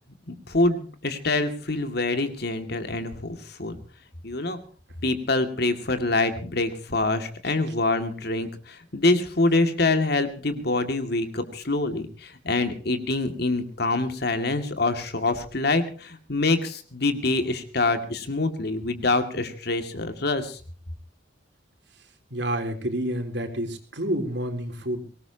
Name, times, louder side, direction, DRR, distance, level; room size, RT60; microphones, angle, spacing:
voice 1, 0.3-3.8 4.2-4.6 5.0-20.6, left 2 dB, 60° left, 8 dB, 2.4 m, -25 dB
voice 2, 22.3-25.0, right 1 dB, 65° right, 5 dB, 3.6 m, -29 dB
23.5 x 19.0 x 2.9 m, 0.39 s
head